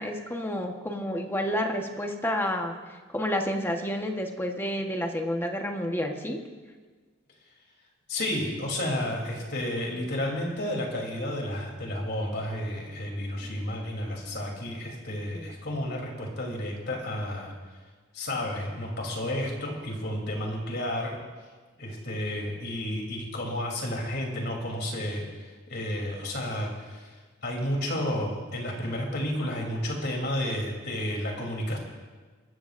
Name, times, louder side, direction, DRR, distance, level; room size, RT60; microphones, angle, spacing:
voice 1, 0.0-2.7 3.1-6.4 15.3-15.5, equal, 10° left, 3 dB, 1.2 m, -30 dB
voice 2, 8.1-17.5 18.1-21.2 21.8-27.1 27.4-31.8, left 1 dB, 60° left, 0 dB, 3.3 m, -31 dB
23.5 x 14.0 x 2.6 m, 1.4 s
head